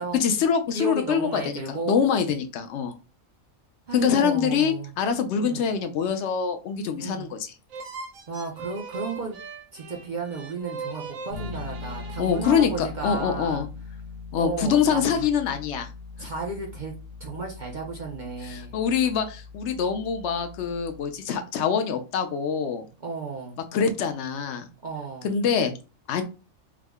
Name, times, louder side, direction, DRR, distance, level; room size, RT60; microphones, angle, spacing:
voice 1, 0.1-2.9 3.9-7.5 12.2-13.7 14.3-15.9 18.4-22.9 23.7-24.7 25.2-25.7 26.1-26.2, left 7 dB, 65° left, 7 dB, 0.8 m, -25 dB
voice 2, 0.7-2.0 3.9-4.9 5.4-5.7 7.0-7.3 8.3-9.4 9.7-13.6 14.4-15.3 16.2-16.9 17.2-18.8 23.0-23.6 24.8-25.3, right 4 dB, 50° right, 0 dB, 0.5 m, -33 dB
sound 1, 7.7-13.2, right 4 dB, 70° right, 1.1 m, -40 dB
Bass guitar, 11.3-21.2, left 4 dB, 85° left, 1.4 m, -41 dB
3.6 x 2.0 x 3.5 m, 0.32 s
omnidirectional pair, 1.5 m